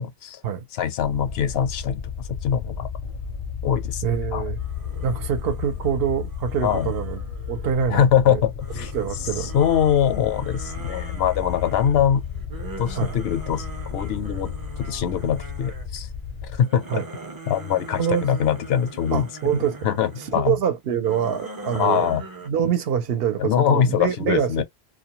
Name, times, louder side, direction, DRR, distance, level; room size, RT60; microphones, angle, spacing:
voice 1, 0.0-0.4 0.7-2.9 3.6-4.0 4.3-4.4 6.6-6.9 7.9-8.9 9.2-12.2 12.8-13.7 13.9-14.5 14.8-16.1 16.4-17.0 17.5-19.5 19.8-20.6 21.7-22.2 23.4-24.6, left 9 dB, 75° left, 0.8 m, -23 dB
sound 1, 1.0-16.6, left 7 dB, 45° left, 0.5 m, -33 dB
voice 2, 4.0-4.6 5.0-7.2 7.5-8.4 8.9-9.5 13.0-13.1 16.9-17.0 18.0-18.2 19.1-19.8 20.3-24.6, right 8 dB, 70° right, 0.8 m, -25 dB
sound 2, 4.6-8.0 8.6-16.1 16.4-20.4 20.9-22.5, right 3 dB, 30° right, 0.5 m, -41 dB
2.2 x 2.2 x 2.8 m
omnidirectional pair, 1.1 m